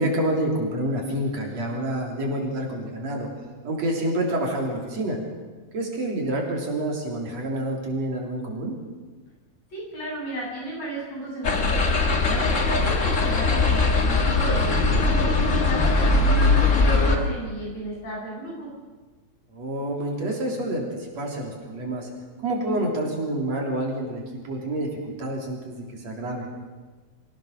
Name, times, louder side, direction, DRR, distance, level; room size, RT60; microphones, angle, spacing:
voice 1, 0.0-3.3 3.6-5.2 5.7-8.8 19.5-20.9 21.2-22.1 22.4-26.5, right 1 dB, 60° right, -1 dB, 4.7 m, -28 dB
voice 2, 9.7-11.8 12.2-18.7, right 1 dB, 65° left, -4 dB, 9.4 m, -33 dB
sound 1, 11.4-17.2, left 3 dB, 30° left, 1.7 m, -20 dB
25.0 x 16.5 x 6.6 m, 1.3 s
omnidirectional pair, 3.3 m